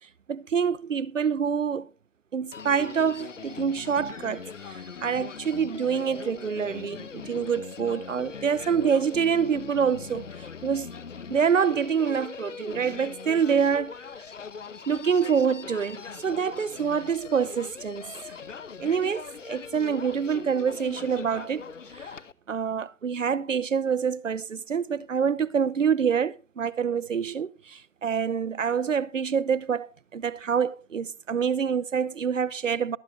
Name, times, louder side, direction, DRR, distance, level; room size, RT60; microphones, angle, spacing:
voice 1, 0.3-1.9 2.3-10.3 10.6-10.9 11.3-13.9 14.9-18.4 18.8-21.6 21.9-22.2 22.5-33.0, right 7 dB, 75° right, 0.9 m, -26 dB
Human voice, 2.5-22.3, left 6 dB, 70° left, 1.0 m, -41 dB
22.0 x 8.2 x 2.7 m
hypercardioid pair, 175°, 38 cm